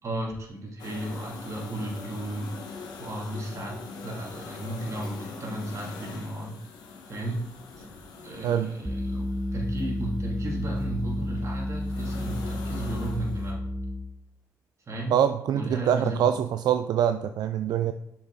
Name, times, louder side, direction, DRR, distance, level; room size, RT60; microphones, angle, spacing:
voice 1, 0.0-2.5 3.0-3.7 4.0-6.6 7.1-7.4 7.8-7.9 8.2-9.3 9.5-13.6 14.9-15.2 15.5-16.3, right 1 dB, 45° right, -2 dB, 2.5 m, -34 dB
sound 1, 0.8-13.5, left 4 dB, 85° left, 1.2 m, -43 dB
sound 2, 8.9-14.1, left 1 dB, 5° right, 0.9 m, -31 dB
voice 2, 15.1-17.9, right 9 dB, 75° right, 9 dB, 0.3 m, -24 dB
6.6 x 5.6 x 3.9 m, 0.79 s
cardioid pair, 80°, 7 cm